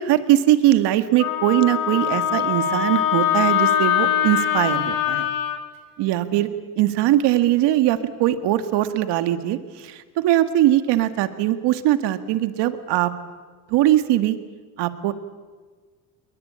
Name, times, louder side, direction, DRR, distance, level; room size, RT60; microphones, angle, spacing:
voice 1, 0.0-5.3 6.0-6.5 6.8-9.6 9.8-10.0 10.2-13.1 13.7-14.4 14.8-15.1, right 13 dB, 80° right, 10 dB, 1.9 m, -20 dB
Wind instrument woodwind instrument, 1.2-5.6, left 10 dB, 55° left, 2.6 m, -22 dB
29.0 x 21.5 x 8.8 m, 1.4 s
cardioid pair, 130°, 41 cm